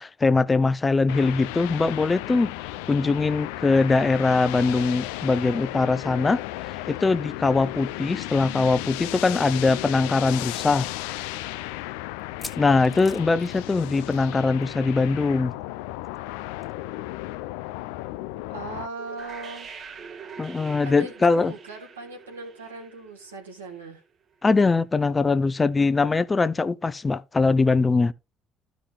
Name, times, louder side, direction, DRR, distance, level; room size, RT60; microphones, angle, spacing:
voice 1, 0.0-2.5 2.9-6.4 6.9-10.9 12.6-15.5 20.4-21.5 24.4-28.1, left 3 dB, 25° left, 0.5 m, -22 dB
sound 1, 1.1-18.9, left 17 dB, 70° left, 0.3 m, -34 dB
sound 2, 12.2-14.3 14.6-14.8 15.1-15.2 16.6-16.7, left 2 dB, 10° left, 1.5 m, -43 dB
voice 2, 18.5-19.7 20.8-24.0, right 3 dB, 85° right, 1.5 m, -39 dB
sound 3, 19.0-23.9, right 6 dB, 50° right, 1.0 m, -44 dB
14.0 x 5.2 x 2.5 m
figure-of-eight pair, 50°, 0 cm